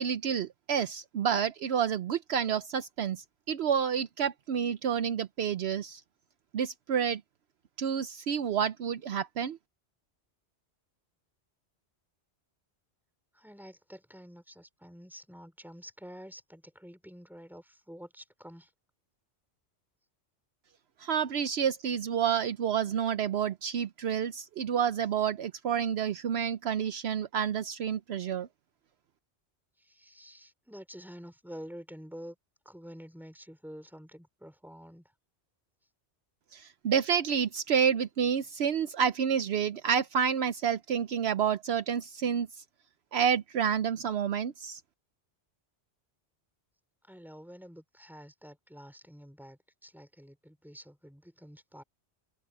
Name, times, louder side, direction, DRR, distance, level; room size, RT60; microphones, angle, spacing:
voice 1, 0.0-6.0 6.5-7.2 7.8-9.6 21.0-28.5 36.5-42.5 43.1-44.8, right 8 dB, 70° right, 0.9 m, -29 dB
voice 2, 13.3-18.7 29.8-32.4 32.7-35.1 47.0-51.8, equal, ahead, 3.7 m, -48 dB
open air
omnidirectional pair, 1.1 m